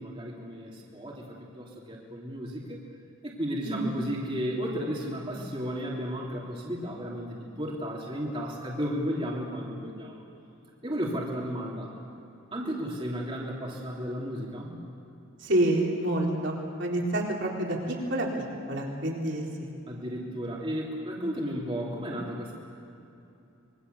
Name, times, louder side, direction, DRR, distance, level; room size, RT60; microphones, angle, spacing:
voice 1, 0.0-2.8 3.2-10.2 10.8-11.9 12.5-14.8 19.9-22.5, equal, 25° right, -3 dB, 3.1 m, -34 dB
voice 2, 15.4-19.7, right 1 dB, 55° right, -1 dB, 4.1 m, -28 dB
26.5 x 22.5 x 7.0 m, 2.8 s
head